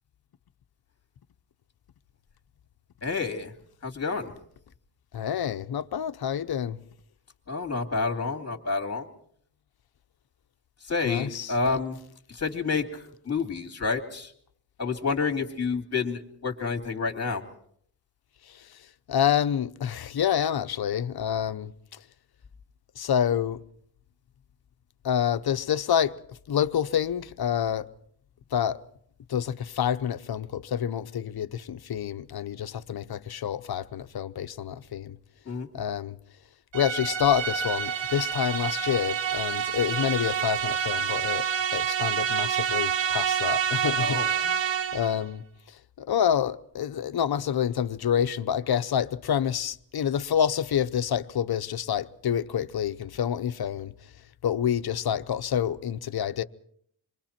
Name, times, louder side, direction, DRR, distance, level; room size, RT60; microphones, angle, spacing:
voice 1, 3.0-3.5 3.8-4.3 7.5-9.0 10.9-12.0 12.4-12.9 13.3-14.3 14.8-17.4 35.5-35.7 44.0-44.3, left 4 dB, 35° left, 2.7 m, -29 dB
voice 2, 5.1-6.8 11.0-11.8 19.1-21.7 23.0-23.6 25.0-26.1 26.5-27.9 28.5-28.8 29.3-35.2 35.7-36.2 36.7-41.4 41.7-44.6 44.9-45.4 46.0-53.9 54.4-56.4, left 9 dB, 60° left, 0.8 m, -27 dB
sound 1, 36.7-45.2, right 7 dB, 85° right, 1.0 m, -28 dB
27.5 x 23.5 x 4.4 m
wide cardioid pair, 135°, 43 cm